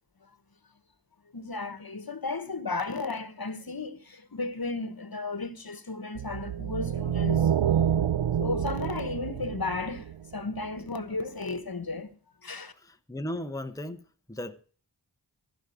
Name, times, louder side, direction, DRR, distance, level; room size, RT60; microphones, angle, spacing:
voice 1, 1.3-7.5 8.4-12.1 12.4-12.7, left 3 dB, 55° left, 1.2 m, -34 dB
sound 1, 6.1-10.6, right 9 dB, 80° right, 0.5 m, -27 dB
voice 2, 12.8-14.6, left 1 dB, 10° left, 0.8 m, -37 dB
15.0 x 5.2 x 7.8 m
wide cardioid pair, 40°, 44 cm